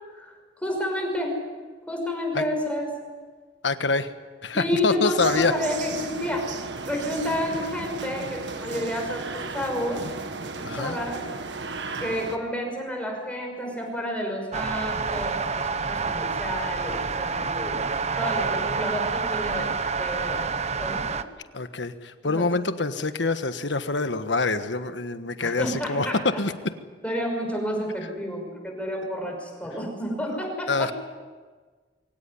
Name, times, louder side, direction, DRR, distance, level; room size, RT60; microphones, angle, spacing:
voice 1, 0.1-1.4 1.9-2.9 4.5-6.5 6.8-10.1 10.6-11.2 12.0-20.5 20.8-21.2 22.2-22.4 25.4-26.4 27.0-30.9, left 1 dB, 10° left, 2 dB, 5.9 m, -30 dB
voice 2, 3.6-4.1 4.4-5.5 10.6-11.0 21.5-26.5 30.7-30.9, left 3 dB, 80° left, 10 dB, 1.4 m, -25 dB
sound 1, 5.2-12.4, right 3 dB, 75° right, 1.7 m, -35 dB
sound 2, 14.5-21.2, right 5 dB, 40° right, 0.8 m, -28 dB
23.5 x 17.5 x 9.8 m, 1.5 s
head